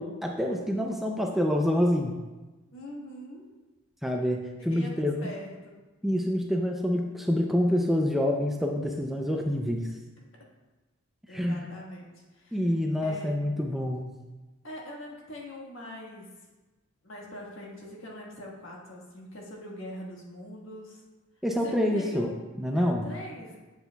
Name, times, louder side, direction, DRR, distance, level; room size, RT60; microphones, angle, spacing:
voice 1, 0.0-2.2 4.0-5.3 6.0-9.9 11.3-11.6 12.5-14.2 21.4-23.0, left 1 dB, ahead, 1 dB, 0.4 m, -27 dB
voice 2, 2.7-3.5 4.6-5.8 11.3-12.7 13.0-13.4 14.6-16.3 17.0-21.0 21.5-22.4 22.7-23.6, equal, 70° left, -2 dB, 1.5 m, -43 dB
7.9 x 7.5 x 2.3 m, 1.2 s
head